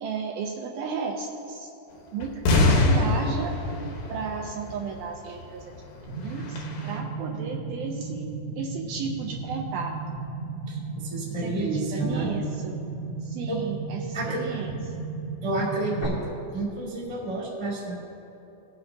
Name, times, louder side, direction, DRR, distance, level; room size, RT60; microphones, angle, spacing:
voice 1, 0.0-1.7 2.1-3.5 4.1-5.6 6.2-8.3 8.6-10.0 11.4-12.8 13.2-14.7, right 5 dB, 80° right, 0 dB, 2.3 m, -33 dB
sound 1, 2.2-4.8 5.2-5.3 5.8-5.9 6.3-6.9, left 2 dB, 80° left, 3.4 m, -23 dB
sound 2, 6.1-16.1, right 4 dB, 20° left, 1.3 m, -35 dB
voice 2, 10.7-12.3 13.5-13.7 14.1-14.5 15.4-17.9, right 2 dB, 10° right, -5 dB, 1.3 m, -30 dB
18.5 x 7.8 x 2.8 m, 3.0 s
omnidirectional pair, 4.7 m